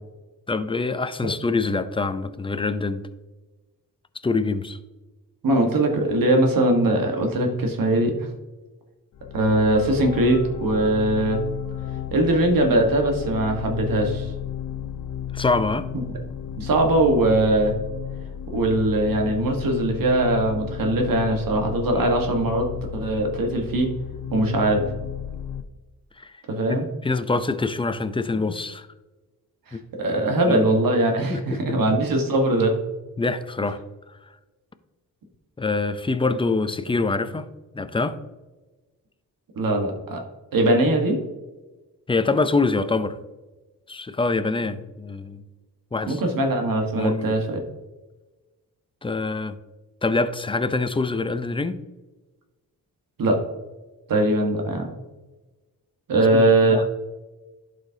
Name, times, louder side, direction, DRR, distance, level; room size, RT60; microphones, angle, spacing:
voice 1, 0.5-3.1 4.2-4.8 15.3-15.9 26.2-26.3 26.7-28.9 29.7-29.8 30.2-30.8 31.3-31.8 33.2-33.8 35.6-37.5 37.7-38.2 42.1-43.2 43.9-45.4 45.9-46.2 47.0-47.6 49.0-49.6 50.0-51.8 56.1-56.8, left 3 dB, 15° left, 11 dB, 0.5 m, -25 dB
voice 2, 5.4-8.3 9.3-11.4 12.1-14.3 15.9-16.0 16.6-17.7 18.5-22.7 22.9-23.9 24.3-24.9 26.5-26.8 30.0-32.7 39.6-40.2 40.5-41.2 46.1-47.6 53.2-53.4 54.1-54.9 56.1-56.8, right 1 dB, 70° right, 3 dB, 1.4 m, -21 dB
sound 1, 9.1-25.6, left 9 dB, 65° left, 0.6 m, -33 dB
11.5 x 5.1 x 2.8 m, 1.2 s
cardioid pair, 80°, 36 cm